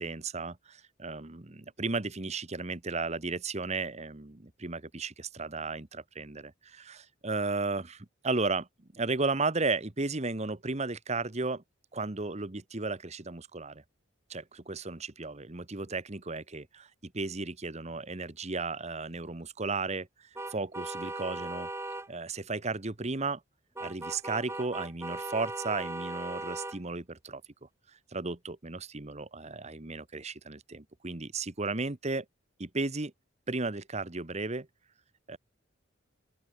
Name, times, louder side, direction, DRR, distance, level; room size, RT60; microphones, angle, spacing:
voice 1, 0.0-11.6 11.9-13.8 14.3-21.7 22.1-23.4 23.8-27.7 28.1-32.2 32.6-33.1 33.5-34.7 35.3-35.4, right 3 dB, 35° right, 1.2 m, -34 dB
sound 1, 20.3-22.1 23.8-26.8, right 2 dB, 15° right, 3.0 m, -38 dB
open air
head